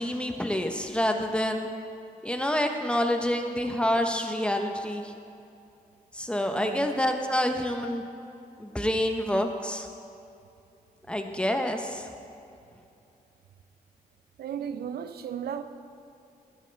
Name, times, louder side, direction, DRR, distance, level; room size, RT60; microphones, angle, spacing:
voice 1, 0.0-1.7 2.2-5.1 6.1-8.0 8.6-9.9 11.1-12.1, left 1 dB, 5° left, 4 dB, 0.9 m, -27 dB
voice 2, 6.6-6.9 14.4-15.6, right 8 dB, 85° right, 10 dB, 0.5 m, -35 dB
15.0 x 8.9 x 3.4 m, 2.6 s
cardioid pair, 90°, 16 cm